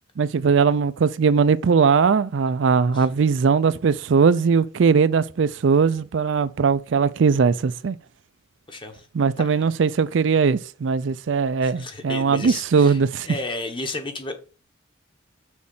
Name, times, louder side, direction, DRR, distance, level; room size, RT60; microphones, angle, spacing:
voice 1, 0.2-8.0 9.1-13.3, right 5 dB, 65° right, 0.4 m, -20 dB
voice 2, 8.7-9.1 9.4-9.7 11.6-14.5, left 2 dB, 25° left, 1.1 m, -33 dB
6.4 x 4.3 x 5.5 m
head